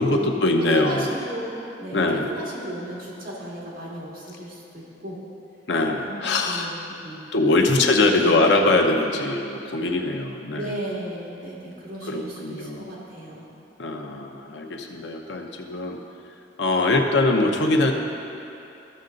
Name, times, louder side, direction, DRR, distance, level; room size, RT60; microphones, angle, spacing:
voice 1, 0.0-1.1 1.9-2.3 5.7-6.8 7.3-10.7 12.1-12.9 13.8-16.0 16.6-17.9, left 2 dB, 75° left, 2 dB, 0.8 m, -22 dB
voice 2, 0.6-1.5 1.8-5.2 6.0-7.2 7.7-7.9 8.4-8.5 10.5-13.5, equal, 50° right, -6 dB, 2.3 m, -34 dB
13.5 x 6.6 x 3.9 m, 2.7 s
head